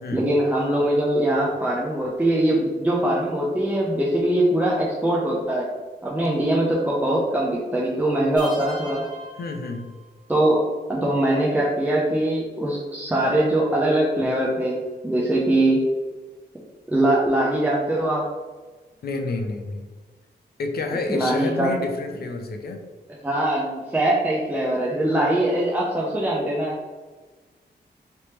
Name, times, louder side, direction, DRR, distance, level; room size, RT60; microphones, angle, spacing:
voice 1, 0.1-5.7 6.0-9.0 10.3-10.6 10.9-14.8 15.0-15.8 16.9-18.2 21.1-21.7 23.2-26.7, right 1 dB, 10° right, -5 dB, 0.5 m, -22 dB
sound 1, 8.4-10.3, right 1 dB, 25° right, 1.1 m, -40 dB
voice 2, 9.4-9.9 19.0-19.9 20.6-22.8, left 3 dB, 60° left, 4 dB, 0.5 m, -29 dB
3.3 x 3.0 x 3.0 m, 1.3 s
wide cardioid pair, 145°, 18 cm